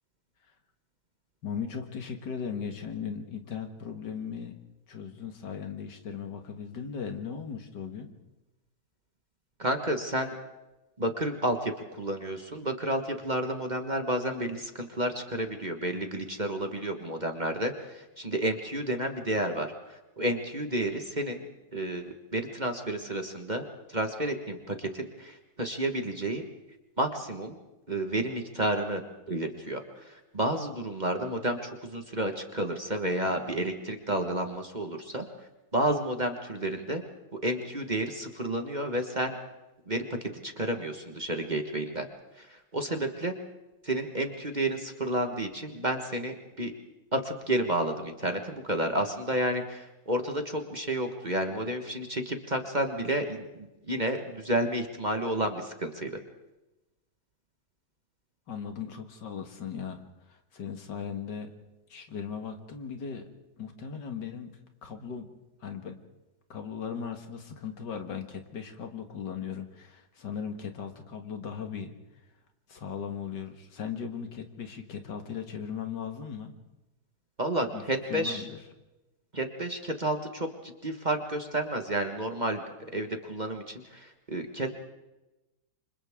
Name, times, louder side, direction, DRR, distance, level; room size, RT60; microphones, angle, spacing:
voice 1, 1.4-4.6 4.9-8.1 58.5-60.0 60.3-61.5 61.9-63.2 63.6-65.3 65.6-66.0 66.5-71.9 72.7-76.5 77.7-78.6, left 7 dB, 75° left, 6 dB, 2.2 m, -38 dB
voice 2, 9.6-10.3 11.0-21.4 21.7-26.4 27.0-27.6 27.9-29.0 29.3-35.3 35.7-37.0 37.4-39.4 39.9-42.1 42.4-43.3 43.8-46.7 47.1-56.2 77.4-78.4 79.3-84.8, right 1 dB, 25° right, 5 dB, 1.5 m, -31 dB
29.0 x 25.5 x 3.7 m, 1.0 s
omnidirectional pair, 1.9 m